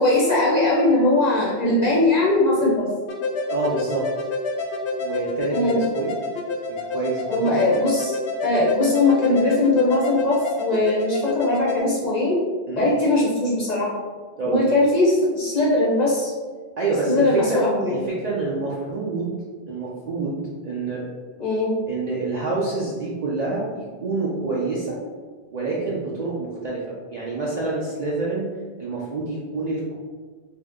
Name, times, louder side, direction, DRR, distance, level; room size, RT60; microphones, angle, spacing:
voice 1, 0.0-2.9 5.5-5.8 7.3-8.2 8.4-12.4 12.8-13.9 14.4-16.3 17.1-18.0 21.4-21.8, left 2 dB, 50° left, -5 dB, 0.6 m, -20 dB
sound 1, 3.1-11.8, left 3 dB, 80° left, 0.8 m, -28 dB
voice 2, 3.5-4.1 5.0-6.1 6.7-7.5 12.7-12.9 14.4-14.6 16.8-17.6 17.9-21.0 21.9-25.0 25.5-28.5 28.8-29.9, right 3 dB, 55° right, -6 dB, 0.4 m, -27 dB
2.7 x 2.1 x 3.5 m, 1.5 s
omnidirectional pair, 1.1 m